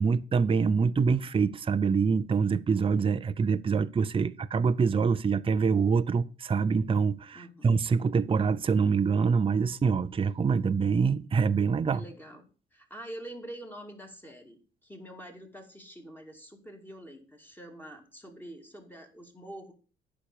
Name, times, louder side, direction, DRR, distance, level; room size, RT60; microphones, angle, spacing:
voice 1, 0.0-12.0, right 5 dB, 25° right, 0.5 m, -25 dB
voice 2, 7.3-7.7 11.9-12.4 12.7-19.7, right 1 dB, 10° left, 2.7 m, -45 dB
9.7 x 6.0 x 6.8 m
cardioid pair, 90°, 20 cm